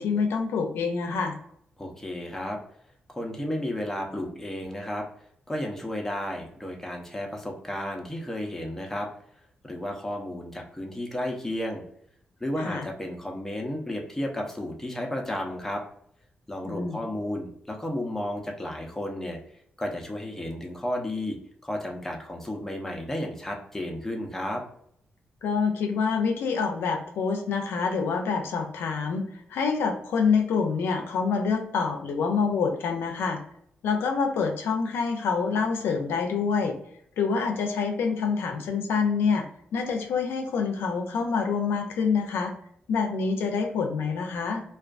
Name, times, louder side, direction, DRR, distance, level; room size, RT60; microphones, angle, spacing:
voice 1, 0.0-1.3 12.6-12.9 16.7-17.0 25.4-29.2 29.5-33.4 33.8-36.8 37.2-39.4 39.7-42.5 42.9-44.6, left 5 dB, 85° left, 3 dB, 0.4 m, -26 dB
voice 2, 1.8-2.6 3.1-5.0 5.5-9.1 9.6-11.8 12.4-15.8 16.5-19.4 19.8-21.4 21.6-24.6, left 1 dB, 10° left, 1 dB, 0.6 m, -32 dB
2.4 x 2.3 x 2.4 m, 0.68 s
cardioid pair, 70°, 4 cm